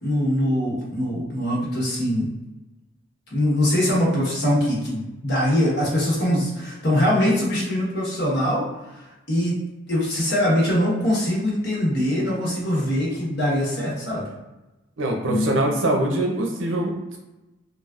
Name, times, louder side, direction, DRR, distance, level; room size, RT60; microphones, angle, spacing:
voice 1, 0.0-2.3 3.3-14.3 15.3-15.5, left 1 dB, 55° left, -5 dB, 1.1 m, -23 dB
voice 2, 15.0-17.2, right 1 dB, 70° right, 1 dB, 0.6 m, -23 dB
3.4 x 2.3 x 2.4 m, 1.0 s
head